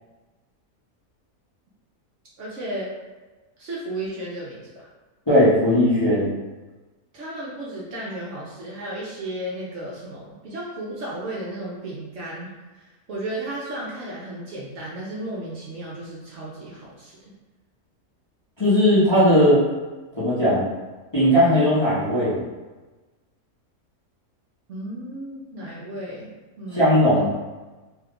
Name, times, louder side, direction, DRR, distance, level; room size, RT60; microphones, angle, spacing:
voice 1, 2.4-2.9 3.6-4.9 7.1-17.2 24.7-27.3, right 1 dB, 65° right, -5 dB, 0.8 m, -34 dB
voice 2, 5.3-6.3 18.6-19.6 20.2-20.7 21.1-22.4 26.7-27.3, equal, 25° left, -11 dB, 0.7 m, -18 dB
2.8 x 2.2 x 3.6 m, 1.2 s
omnidirectional pair, 1.6 m